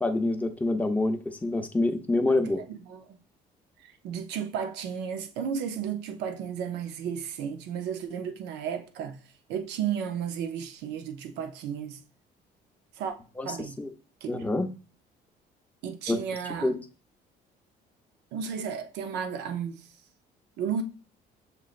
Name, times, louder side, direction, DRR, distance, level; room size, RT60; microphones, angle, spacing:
voice 1, 0.0-2.6 13.4-13.5 13.8-13.9 14.3-14.7 16.1-16.2 16.6-16.8, left 2 dB, 10° left, 0.6 m, -26 dB
voice 2, 2.4-3.2 3.8-9.2 9.5-12.0 12.9-13.1 13.4-13.8 14.2-14.4 15.8-16.7 18.3-19.9 20.6-20.8, right 7 dB, 85° right, 0.7 m, -33 dB
6.6 x 3.1 x 2.4 m
cardioid pair, 110°, 17 cm